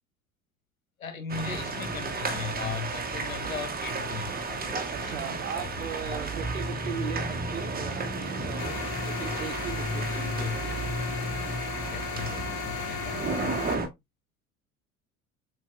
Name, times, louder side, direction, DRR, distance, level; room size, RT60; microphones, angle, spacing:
voice 1, 1.0-5.9 10.1-10.6 11.8-13.5, left 5 dB, 85° left, 0.7 m, -38 dB
sound 1, 1.3-13.9, right 2 dB, 20° right, 1.1 m, -32 dB
voice 2, 4.9-10.6, right 8 dB, 80° right, 1.0 m, -38 dB
sound 2, 8.6-13.8, left 12 dB, 50° left, 0.5 m, -37 dB
7.1 x 2.6 x 2.3 m
figure-of-eight pair, 55°, 40 cm